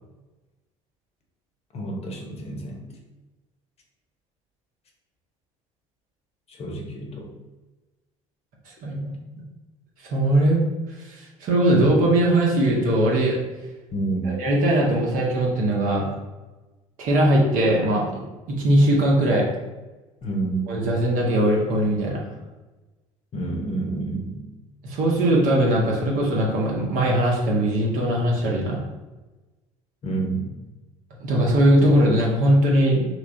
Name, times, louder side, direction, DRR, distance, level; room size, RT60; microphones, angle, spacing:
voice 1, 1.7-2.8 6.5-7.3 13.9-14.4 20.2-20.7 23.3-24.4 30.0-30.5, right 3 dB, 35° left, 1 dB, 0.8 m, -28 dB
voice 2, 8.7-9.1 10.0-10.6 11.0-13.4 14.2-16.1 17.0-19.5 20.7-22.2 24.8-28.8 31.2-33.0, right 1 dB, 50° right, -3 dB, 0.9 m, -20 dB
3.2 x 3.1 x 2.6 m, 1.1 s
figure-of-eight pair, 60°, 17 cm